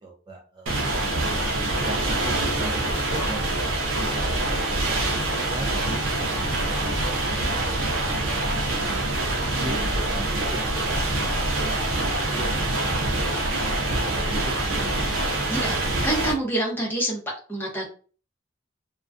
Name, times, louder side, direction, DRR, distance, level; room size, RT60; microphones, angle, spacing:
voice 1, 0.0-1.5 1.8-4.3 4.7-7.0 7.3-11.8 14.1-14.8, right 1 dB, 20° right, -2 dB, 0.4 m, -40 dB
sound 1, 0.7-16.3, right 2 dB, 80° right, 0.6 m, -25 dB
voice 2, 15.5-17.2 17.5-17.9, right 1 dB, 10° left, -2 dB, 0.7 m, -27 dB
2.3 x 2.2 x 2.4 m, 0.38 s
head